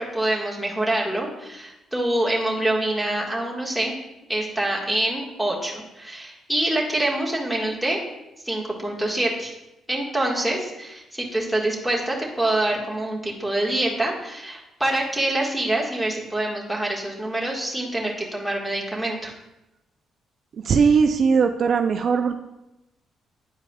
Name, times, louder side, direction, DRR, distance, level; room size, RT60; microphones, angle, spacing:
voice 1, 0.0-3.9 4.3-8.0 8.4-9.5 9.9-19.3, right 1 dB, ahead, -2 dB, 1.6 m, -25 dB
voice 2, 20.6-22.3, right 5 dB, 55° right, 6 dB, 0.4 m, -19 dB
9.7 x 4.7 x 2.3 m, 0.93 s
cardioid pair, 90°, 0 cm